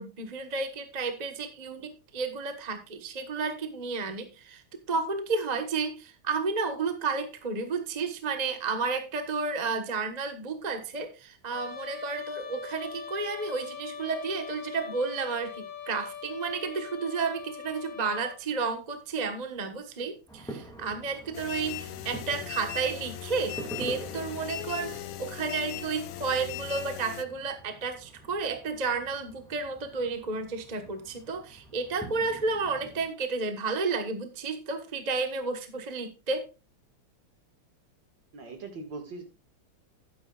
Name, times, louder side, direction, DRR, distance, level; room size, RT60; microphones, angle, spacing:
voice 1, 0.0-4.6 4.9-36.5, right 4 dB, 25° right, 7 dB, 1.0 m, -32 dB
Trumpet, 11.5-18.4, left 7 dB, 45° right, 5.3 m, -42 dB
sound 1, 20.3-33.1, right 1 dB, ahead, 1.9 m, -46 dB
sound 2, 21.3-27.2, left 11 dB, 75° left, 1.4 m, -39 dB
voice 2, 38.3-39.2, right 3 dB, 60° right, 6 dB, 2.5 m, -40 dB
11.5 x 9.5 x 2.4 m, 0.28 s
omnidirectional pair, 2.3 m